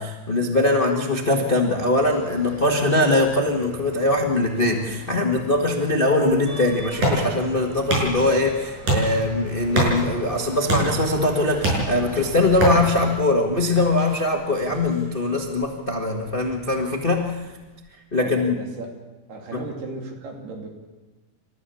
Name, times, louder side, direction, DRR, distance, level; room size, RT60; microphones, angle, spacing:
voice 1, 0.0-17.3 18.1-18.6 19.5-19.7, left 2 dB, 85° left, 1 dB, 0.4 m, -22 dB
sound 1, 1.9-13.2, equal, 10° right, 3.4 m, -42 dB
sound 2, 4.4-5.5 6.0-9.4, right 2 dB, 30° right, 5.9 m, -44 dB
sound 3, 6.3-17.8, right 2 dB, 50° right, 7.6 m, -29 dB
voice 2, 18.2-18.9 19.3-20.7, right 3 dB, 80° right, 1 dB, 4.9 m, -36 dB
29.0 x 14.0 x 7.1 m, 1.2 s
omnidirectional pair, 4.5 m